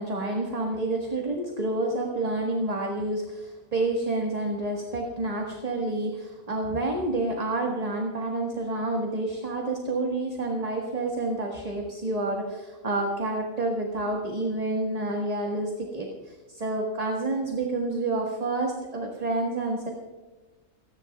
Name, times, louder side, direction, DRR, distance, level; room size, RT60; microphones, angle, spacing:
voice 1, 0.0-19.9, right 2 dB, 30° right, 0 dB, 1.6 m, -29 dB
29.0 x 11.0 x 2.4 m, 1.3 s
omnidirectional pair, 1.5 m